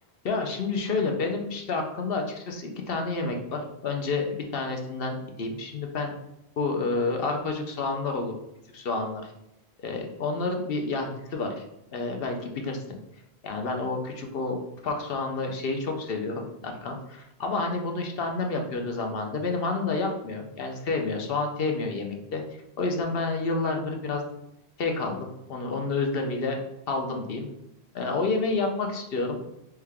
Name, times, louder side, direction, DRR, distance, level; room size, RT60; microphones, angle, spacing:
voice 1, 0.2-6.1 6.6-8.3 8.7-9.3 9.8-11.6 11.9-13.0 13.4-14.6 14.8-22.4 22.8-24.2 24.8-26.6 26.9-27.5 27.9-29.4, left 3 dB, 65° left, 3 dB, 0.8 m, -29 dB
3.4 x 3.3 x 3.4 m, 0.85 s
omnidirectional pair, 1.1 m